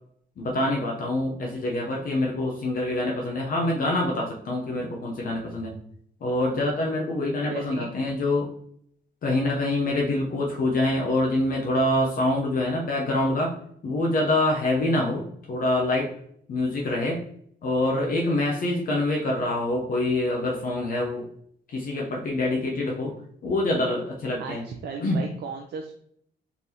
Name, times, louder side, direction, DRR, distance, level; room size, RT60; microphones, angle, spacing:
voice 1, 0.4-5.8 6.2-8.5 9.2-13.5 13.8-15.2 15.5-16.1 16.5-17.2 17.6-21.3 21.7-23.1 23.4-24.6 25.0-25.2, left 1 dB, 55° left, -1 dB, 0.8 m, -25 dB
voice 2, 7.5-7.9 24.4-25.9, right 5 dB, 75° right, 2 dB, 0.5 m, -35 dB
4.0 x 3.5 x 2.8 m, 0.66 s
cardioid pair, 135°, 18 cm